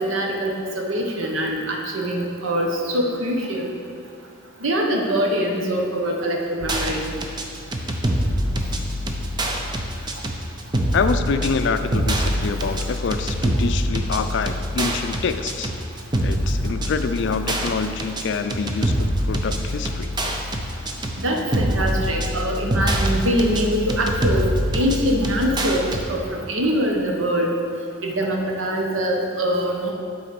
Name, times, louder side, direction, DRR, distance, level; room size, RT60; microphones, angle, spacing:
voice 1, 0.0-3.7 4.6-7.0 21.2-24.4 24.7-25.8 26.1-27.5 28.0-29.9, equal, 75° right, 1 dB, 1.0 m, -23 dB
sound 1, 6.6-26.0, equal, 20° right, 0.5 m, -25 dB
voice 2, 10.9-15.7 16.2-20.1, left 5 dB, 60° left, 9 dB, 0.4 m, -26 dB
8.6 x 4.0 x 5.2 m, 2.4 s
head